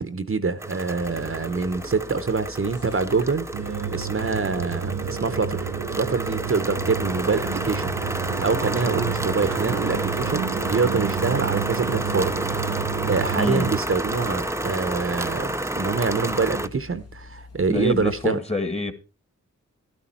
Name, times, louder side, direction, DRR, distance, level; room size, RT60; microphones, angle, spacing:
voice 1, 0.0-7.9 8.4-18.4, right 4 dB, 45° right, 0.9 m, -26 dB
sound 1, 0.6-16.7, right 1 dB, 10° right, 0.6 m, -30 dB
sound 2, 1.0-18.2, left 4 dB, 50° left, 1.7 m, -44 dB
sound 3, 3.5-13.8, right 8 dB, 70° right, 0.7 m, -30 dB
voice 2, 13.4-13.7 17.7-18.9, left 2 dB, 20° left, 1.6 m, -26 dB
12.0 x 11.5 x 4.3 m
cardioid pair, 55°, 31 cm